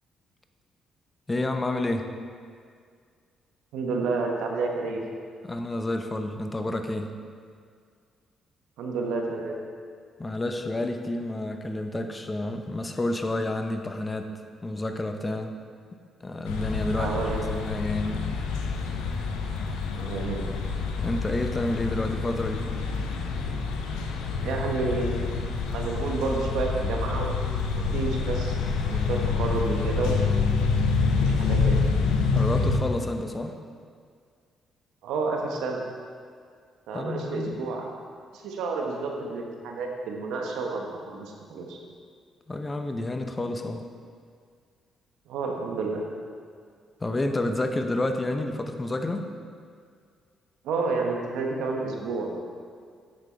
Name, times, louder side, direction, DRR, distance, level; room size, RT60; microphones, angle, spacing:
voice 1, 1.3-2.1 5.4-7.1 10.2-14.3 14.6-15.6 16.2-17.2 17.5-18.2 21.0-22.7 32.3-33.6 36.9-37.6 42.5-43.8 47.0-49.3, left 2 dB, 25° left, 6 dB, 0.8 m, -29 dB
voice 2, 3.7-5.0 8.8-9.6 17.0-17.5 19.9-20.5 24.4-25.4 25.7-27.4 27.9-28.6 28.9-30.3 31.2-31.8 35.0-35.8 36.9-37.9 38.3-41.8 45.3-46.0 50.6-52.3, right 4 dB, 80° right, 1 dB, 1.1 m, -30 dB
sound 1, 16.5-32.8, left 4 dB, 90° left, 0.7 m, -27 dB
8.8 x 6.1 x 4.4 m, 2.1 s
supercardioid pair, 60°, 0 cm